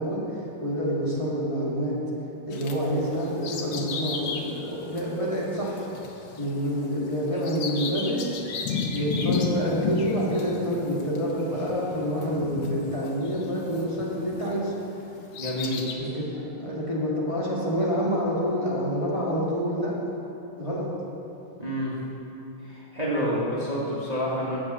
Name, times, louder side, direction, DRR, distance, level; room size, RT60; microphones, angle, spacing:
voice 1, 0.0-1.9 2.5-5.9 6.4-8.3 8.9-14.7 16.0-19.9 20.6-20.9, equal, 15° left, -7 dB, 1.6 m, -27 dB
Bird vocalization bird call bird song, 2.5-14.6 15.1-15.9, left 4 dB, 75° left, 1.6 m, -33 dB
voice 2, 15.4-15.8 21.6-21.9 22.6-24.6, equal, 20° right, -8 dB, 1.3 m, -28 dB
7.7 x 6.1 x 7.2 m, 3.0 s
omnidirectional pair, 2.3 m